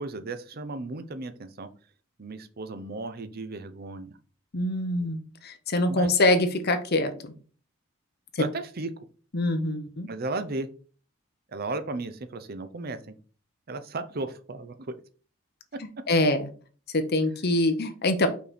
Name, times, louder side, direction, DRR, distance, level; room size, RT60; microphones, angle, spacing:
voice 1, 0.0-1.7 2.2-4.2 5.9-6.1 8.4-8.9 10.1-10.7 11.5-13.1 13.7-14.9, right 2 dB, 45° right, 10 dB, 0.6 m, -35 dB
voice 2, 4.5-7.3 8.3-8.4 9.3-10.1 16.1-16.5 16.9-18.3, left 2 dB, 45° left, 8 dB, 0.9 m, -24 dB
5.6 x 4.5 x 4.2 m, 0.40 s
head